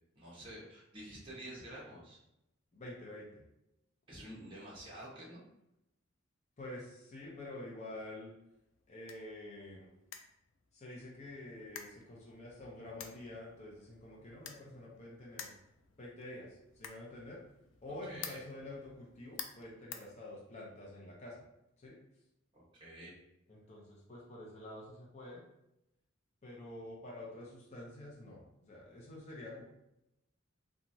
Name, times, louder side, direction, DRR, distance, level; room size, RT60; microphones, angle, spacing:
voice 1, 0.1-2.2 4.1-5.4 18.0-18.4 22.5-23.1, right 1 dB, 25° right, -7 dB, 1.0 m, -49 dB
voice 2, 2.7-3.4 6.6-8.4 8.9-9.9 10.7-15.6 16.0-17.4 17.8-21.4 21.8-22.0 23.5-25.4 26.4-29.6, left 1 dB, 35° left, -4 dB, 0.7 m, -48 dB
sound 1, 8.5-20.8, left 7 dB, 75° left, 0.3 m, -52 dB
3.0 x 2.4 x 2.6 m, 0.85 s
head